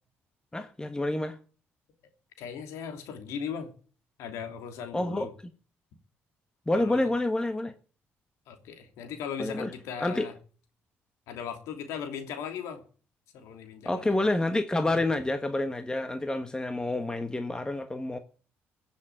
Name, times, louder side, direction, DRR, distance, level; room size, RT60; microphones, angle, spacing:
voice 1, 0.5-1.4 4.9-5.3 6.7-7.7 9.4-9.7 10.0-10.3 13.8-18.2, left 2 dB, 15° left, 1.5 m, -28 dB
voice 2, 2.4-3.7 4.2-5.3 6.7-7.1 8.5-10.3 11.3-12.8 13.3-14.1, left 7 dB, 85° left, 3.0 m, -38 dB
15.5 x 7.5 x 9.1 m
supercardioid pair, 70°, 5 cm